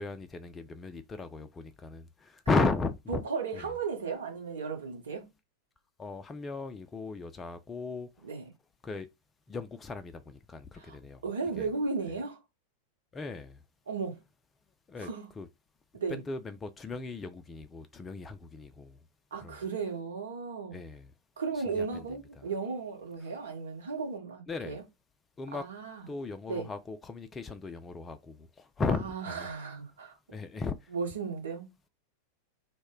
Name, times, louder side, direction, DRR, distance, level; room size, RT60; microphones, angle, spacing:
voice 1, 0.0-3.2 3.5-3.7 6.0-8.1 8.8-9.1 9.5-11.2 11.6-11.7 13.1-13.6 14.9-15.1 15.4-15.5 16.1-18.9 19.4-19.5 20.7-21.1 21.7-21.9 24.5-24.8 25.4-25.6 26.1-28.4 28.8-29.5 30.3-30.8, left 3 dB, 20° left, 0.3 m, -35 dB
voice 2, 3.1-5.3 8.2-8.4 10.7-11.0 11.2-12.4 13.9-14.2 15.0-15.3 15.9-16.2 19.3-20.8 21.4-24.8 25.5-26.1 26.5-26.7 28.9-30.2 30.9-31.7, right 5 dB, 70° right, 1.0 m, -35 dB
2.1 x 2.1 x 3.7 m
figure-of-eight pair, 90°, 0 cm